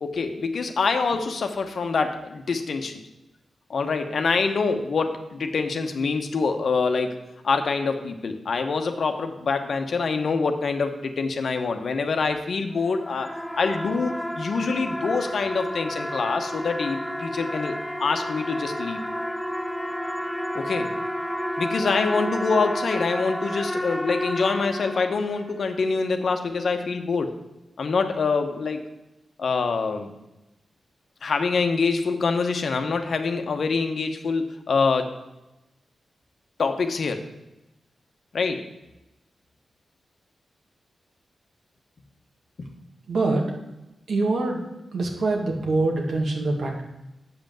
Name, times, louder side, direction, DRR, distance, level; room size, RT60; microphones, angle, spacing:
voice 1, 0.0-3.0 3.7-7.2 7.4-19.0 20.5-20.9 21.6-27.3 27.8-28.9 29.4-30.1 31.2-35.1 36.6-37.3 38.3-38.7 42.6-42.7, left 4 dB, 70° left, 6 dB, 1.0 m, -25 dB
sound 1, 12.7-25.5, equal, 5° left, 0.6 m, -31 dB
voice 2, 43.1-43.5 44.1-46.8, right 2 dB, 75° right, 0 dB, 2.0 m, -24 dB
7.9 x 5.4 x 7.6 m, 0.95 s
cardioid pair, 55°, 0 cm